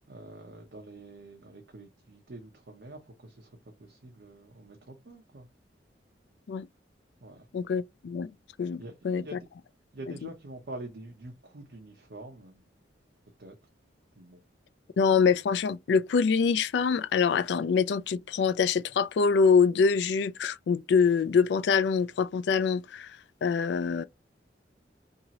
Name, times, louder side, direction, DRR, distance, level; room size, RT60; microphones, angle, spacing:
voice 1, 0.1-5.5 7.2-7.5 8.8-9.5 9.9-12.6 13.4-13.6 14.2-14.4, right 2 dB, 70° right, 0.7 m, -46 dB
voice 2, 7.5-8.3 8.6-9.4 15.0-24.0, left 5 dB, 75° left, 0.3 m, -25 dB
2.8 x 2.7 x 2.8 m
head